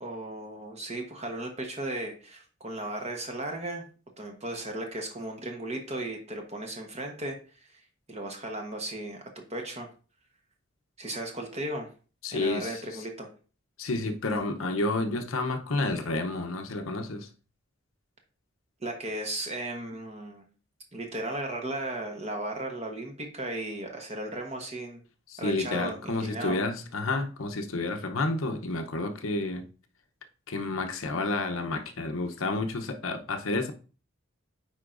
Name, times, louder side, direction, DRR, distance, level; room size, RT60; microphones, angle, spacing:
voice 1, 0.0-3.8 4.2-7.8 8.1-9.2 9.5-9.9 11.0-11.9 12.3-13.3 18.8-20.4 20.9-25.0 25.4-26.6, right 1 dB, 30° right, 1.1 m, -36 dB
voice 2, 12.2-12.8 13.8-17.3 25.3-29.6 30.5-33.7, left 2 dB, 85° left, 0.8 m, -30 dB
9.4 x 4.4 x 2.5 m
head